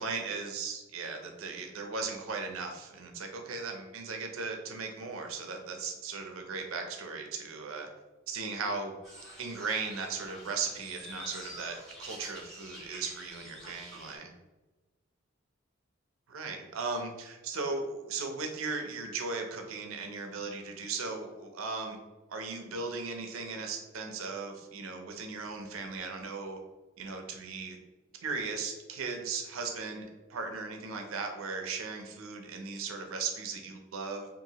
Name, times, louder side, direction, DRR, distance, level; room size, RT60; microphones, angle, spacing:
voice 1, 0.0-7.9 8.3-8.9 9.4-14.3 16.3-22.0 22.3-26.6 27.0-27.8 28.2-30.0 30.3-34.3, right 4 dB, 75° right, 3 dB, 0.5 m, -37 dB
sound 1, 9.0-14.2, equal, 5° right, 1.4 m, -47 dB
2.7 x 2.5 x 2.8 m, 1.1 s
head